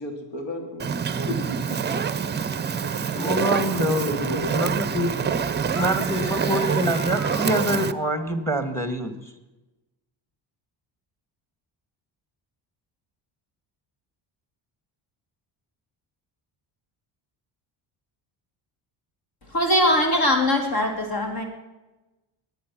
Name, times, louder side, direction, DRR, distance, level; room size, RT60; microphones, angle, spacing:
voice 1, 0.0-1.5 1.9-2.1 2.8-4.6 5.1-5.4 6.0-6.1, left 1 dB, 65° left, 4 dB, 3.5 m, -35 dB
Fire, 0.8-7.9, right 6 dB, 20° right, 0.6 m, -26 dB
voice 2, 3.1-5.1 5.8-9.1, equal, 5° left, 9 dB, 1.8 m, -26 dB
sound 1, 5.6-8.2, left 2 dB, 85° left, 3.6 m, -38 dB
voice 3, 19.4-21.4, left 1 dB, 50° left, 3 dB, 3.4 m, -21 dB
22.0 x 9.3 x 6.1 m, 1.1 s
cardioid pair, 140°, 47 cm